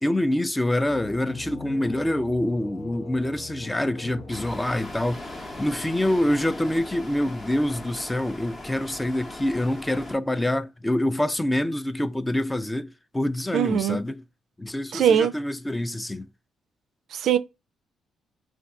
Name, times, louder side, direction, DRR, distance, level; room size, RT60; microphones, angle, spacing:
voice 1, 0.0-14.2 14.6-16.3, left 1 dB, 10° left, 0.3 m, -26 dB
sound 1, 0.7-5.4, left 3 dB, 80° left, 0.7 m, -42 dB
sound 2, 4.3-10.2, left 1 dB, 30° left, 0.7 m, -39 dB
voice 2, 13.5-14.0 14.9-15.3 17.1-17.4, right 8 dB, 70° right, 0.3 m, -21 dB
2.5 x 2.3 x 3.4 m
cardioid pair, 90°, 0 cm